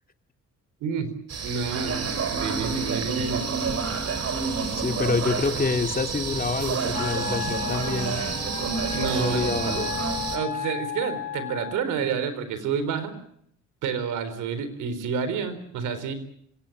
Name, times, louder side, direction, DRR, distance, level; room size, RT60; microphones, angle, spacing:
voice 1, 0.8-1.1 1.4-3.5 8.9-9.4 10.3-13.2 13.8-16.1, right 6 dB, 90° right, 12 dB, 4.0 m, -29 dB
sound 1, 1.3-10.4, right 5 dB, 55° right, 4.3 m, -29 dB
voice 2, 4.7-8.2 9.2-9.9, left 4 dB, 30° left, 6 dB, 2.6 m, -27 dB
Wind instrument woodwind instrument, 6.9-11.8, left 9 dB, 80° left, 3.2 m, -34 dB
25.0 x 18.0 x 8.5 m, 0.71 s
cardioid pair, 90°, 30 cm